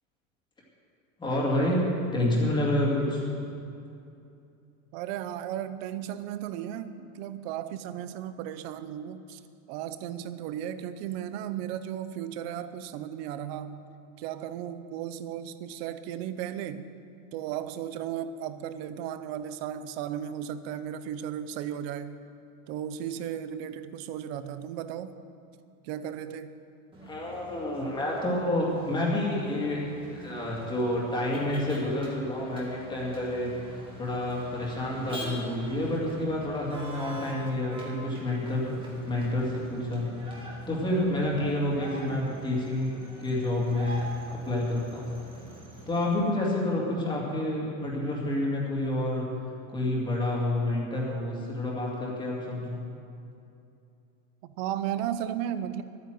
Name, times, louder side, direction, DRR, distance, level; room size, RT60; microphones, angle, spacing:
voice 1, 1.2-3.2 27.0-45.1 45.9-49.2 49.7-52.8, left 1 dB, 10° left, -4 dB, 2.3 m, -29 dB
voice 2, 4.9-9.4 9.7-13.8 14.2-16.9 17.3-22.2 22.7-25.1 25.8-26.5 54.4-55.8, right 10 dB, 50° right, 12 dB, 0.7 m, -35 dB
Motor vehicle (road), 26.9-46.1, right 1 dB, 10° right, 1.8 m, -45 dB
12.5 x 9.5 x 7.7 m, 2.7 s
supercardioid pair, 170°, 41 cm